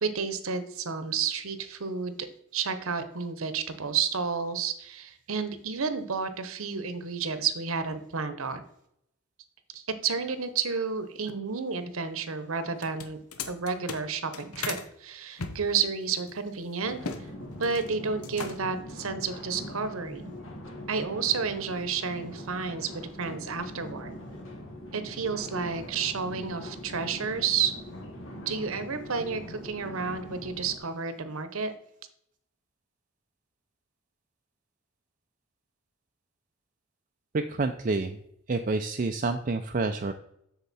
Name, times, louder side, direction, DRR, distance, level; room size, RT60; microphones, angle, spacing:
voice 1, 0.0-2.3 2.5-8.6 9.7-13.2 13.5-17.0 17.6-20.3 20.9-24.1 24.9-27.7 28.5-31.7, right 5 dB, 70° right, 11 dB, 0.9 m, -31 dB
sound 1, 12.7-14.9 15.4-17.2 17.5-17.9 18.2-18.8, left 5 dB, 90° left, 1.0 m, -38 dB
sound 2, 16.8-30.8, left 1 dB, 60° left, 1.8 m, -42 dB
voice 2, 37.3-38.2 38.5-40.1, right 3 dB, 40° right, 6 dB, 0.4 m, -28 dB
8.1 x 6.6 x 4.2 m, 0.73 s
head